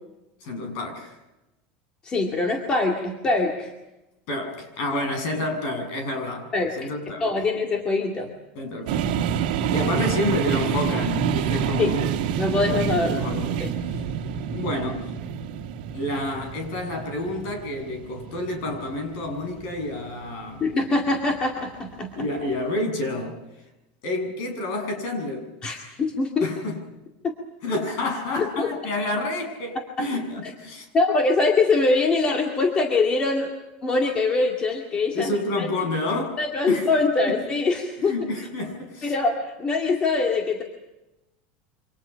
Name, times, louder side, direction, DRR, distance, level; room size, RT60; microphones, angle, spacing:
voice 1, 0.4-1.1 4.3-6.5 6.8-7.2 8.6-9.1 9.5-12.1 12.9-13.5 14.5-15.1 15.9-20.6 22.2-23.4 24.0-25.5 26.4-26.8 27.6-30.9 35.1-36.4 36.7-36.9 38.0-39.1, left 2 dB, 50° left, 4 dB, 7.4 m, -29 dB
voice 2, 2.0-3.7 6.5-6.9 7.2-8.3 11.8-11.9 12.4-13.1 13.6-13.7 20.6-22.3 25.6-26.5 28.4-28.7 30.9-33.5 33.8-35.7 36.4-38.1 39.0-40.6, left 3 dB, 20° left, 1 dB, 2.2 m, -23 dB
sound 1, 8.9-20.6, right 8 dB, 70° right, 2.1 m, -28 dB
28.5 x 25.5 x 5.8 m, 0.98 s
supercardioid pair, 180°, 5 cm